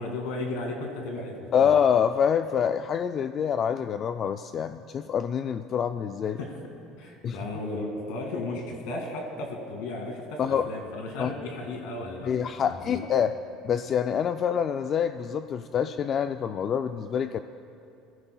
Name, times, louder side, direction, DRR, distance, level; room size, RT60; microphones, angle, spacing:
voice 1, 0.0-1.7 6.4-6.5 7.0-12.3 12.7-13.0, left 2 dB, 80° left, 2 dB, 2.2 m, -35 dB
voice 2, 1.5-6.4 7.2-7.4 10.4-10.7 11.2-11.3 12.2-13.3 13.6-17.4, left 8 dB, 40° left, 9 dB, 0.3 m, -26 dB
20.5 x 15.0 x 2.3 m, 2.6 s
cardioid pair, 125°, 0 cm